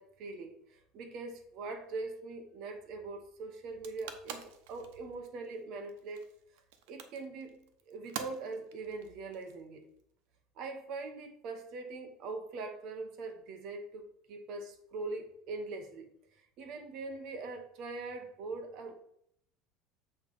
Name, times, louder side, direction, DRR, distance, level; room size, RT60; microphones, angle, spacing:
voice 1, 0.0-6.3 6.5-7.6 7.9-9.9 10.6-18.9, right 3 dB, 50° right, 5 dB, 0.9 m, -42 dB
sound 1, 3.6-10.0, right 8 dB, 90° right, 0.8 m, -47 dB
7.4 x 3.1 x 5.4 m, 0.72 s
cardioid pair, 165°, 0 cm